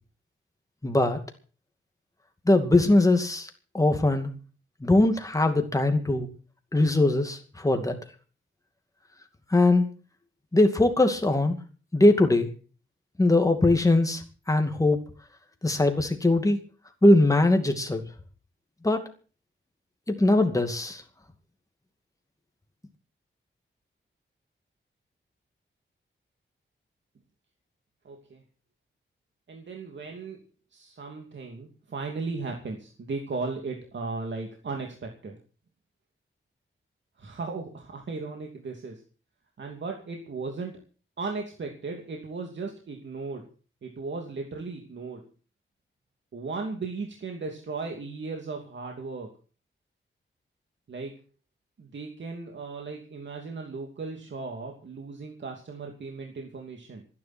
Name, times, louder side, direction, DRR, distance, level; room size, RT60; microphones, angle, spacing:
voice 1, 0.8-1.2 2.5-3.5 3.7-4.3 4.8-6.3 6.7-8.0 9.5-9.8 10.5-11.6 11.9-12.5 13.2-15.0 15.6-16.6 17.0-18.0 18.8-19.0 20.1-21.0, left 2 dB, 15° left, 6 dB, 2.4 m, -21 dB
voice 2, 28.0-28.4 29.5-30.4 30.7-35.4 37.2-39.0 39.6-40.8 41.2-43.5 43.8-45.2 46.3-49.3 50.9-51.2 51.8-57.0, right 4 dB, 65° right, 2 dB, 2.8 m, -36 dB
26.0 x 10.5 x 4.5 m, 0.38 s
wide cardioid pair, 150°, 21 cm